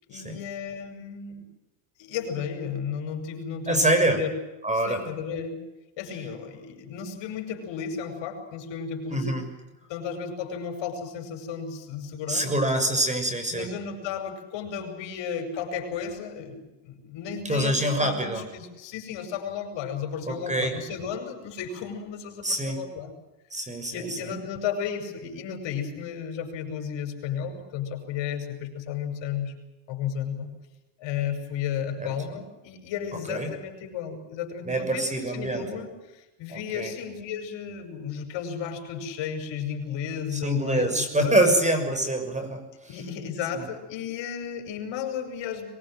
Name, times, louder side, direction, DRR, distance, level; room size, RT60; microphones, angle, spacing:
voice 1, 0.1-1.4 2.0-4.3 4.9-5.6 6.0-9.4 9.9-12.5 13.5-23.1 23.9-29.6 29.9-30.5 31.0-41.4 42.9-45.7, left 7 dB, 70° left, 5 dB, 6.2 m, -33 dB
voice 2, 3.7-4.2 4.6-5.0 9.1-9.4 12.3-13.7 17.4-18.5 20.2-20.8 22.4-22.8 23.5-24.3 32.0-32.1 33.3-33.5 34.7-35.8 36.5-36.9 40.3-42.9 43.5-43.7, right 1 dB, 15° right, 7 dB, 6.5 m, -25 dB
23.0 x 22.0 x 7.9 m, 1.0 s
supercardioid pair, 100°, 45 cm